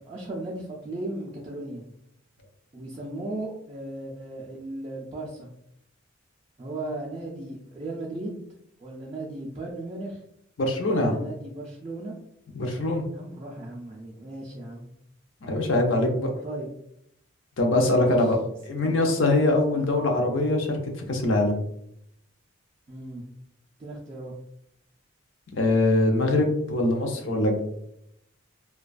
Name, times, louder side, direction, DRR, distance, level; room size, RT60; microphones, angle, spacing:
voice 1, 0.0-1.9 2.7-5.5 6.6-8.4 8.8-10.2 10.8-12.1 13.1-14.9 16.4-16.7 17.9-18.3 18.8-19.0 19.7-19.9 22.9-23.3 23.8-24.3, right 2 dB, 25° right, -4 dB, 0.3 m, -36 dB
voice 2, 10.6-11.2 12.6-13.1 15.4-16.3 17.6-18.4 18.6-20.8 21.1-21.5 25.6-27.6, left 2 dB, 65° left, 2 dB, 0.5 m, -23 dB
2.3 x 2.2 x 2.4 m, 0.75 s
head